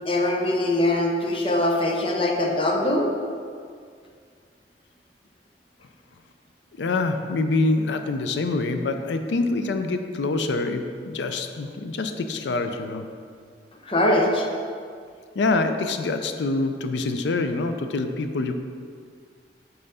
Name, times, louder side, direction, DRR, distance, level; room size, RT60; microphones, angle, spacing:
voice 1, 0.1-3.1 13.8-14.5, left 1 dB, 30° left, 1 dB, 0.7 m, -22 dB
voice 2, 6.8-13.1 15.4-18.5, left 3 dB, 80° left, 7 dB, 0.4 m, -25 dB
5.5 x 3.9 x 5.4 m, 2.2 s
head